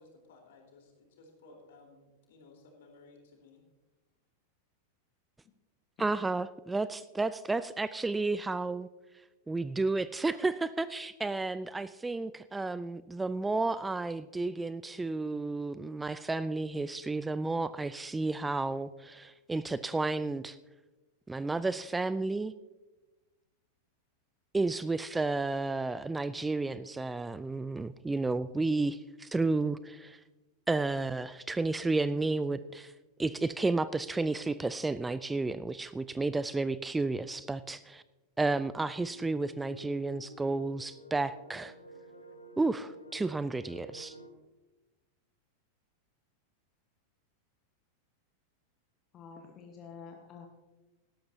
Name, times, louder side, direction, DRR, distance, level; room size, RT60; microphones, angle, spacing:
voice 1, 0.0-3.6, left 3 dB, 55° left, 1 dB, 3.9 m, -57 dB
voice 2, 6.0-8.9 9.5-20.6 21.3-22.5 24.5-30.2 30.7-32.9 33.2-38.0 38.4-41.7 42.6-44.2, right 3 dB, 10° right, 16 dB, 0.3 m, -32 dB
sound 1, 39.0-44.3, right 1 dB, 80° left, 1.1 m, -50 dB
voice 3, 49.1-50.5, left 5 dB, 30° left, 3 dB, 1.3 m, -48 dB
18.0 x 13.5 x 2.8 m, 1.1 s
figure-of-eight pair, 90°, 0 cm